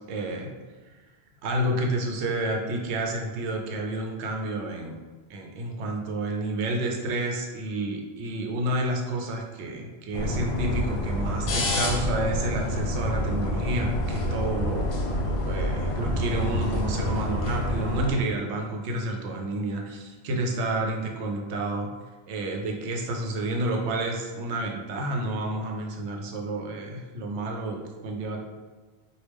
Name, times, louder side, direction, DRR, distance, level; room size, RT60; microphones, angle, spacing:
voice 1, 0.1-0.5 1.4-5.0 5.3-14.9 15.2-21.9 22.3-28.4, right 1 dB, 90° right, 1 dB, 0.9 m, -30 dB
sound 1, 10.1-18.1, left 1 dB, 75° left, 0.8 m, -27 dB
3.0 x 2.3 x 3.3 m, 1.3 s
omnidirectional pair, 1.1 m